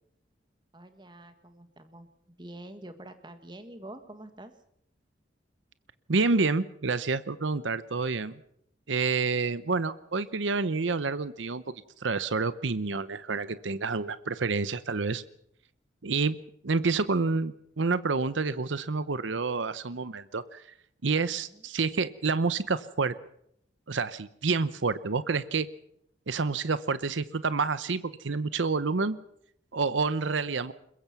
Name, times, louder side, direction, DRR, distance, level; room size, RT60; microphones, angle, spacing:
voice 1, 0.7-4.5 21.4-21.6, right 1 dB, 25° right, 8 dB, 1.7 m, -47 dB
voice 2, 6.1-8.4 8.9-11.6 12.0-15.2 16.0-16.4 16.6-20.6 21.0-23.1 23.9-25.7 26.3-29.2 29.7-30.7, right 4 dB, 80° right, 15 dB, 0.8 m, -28 dB
22.0 x 21.5 x 6.0 m, 0.73 s
head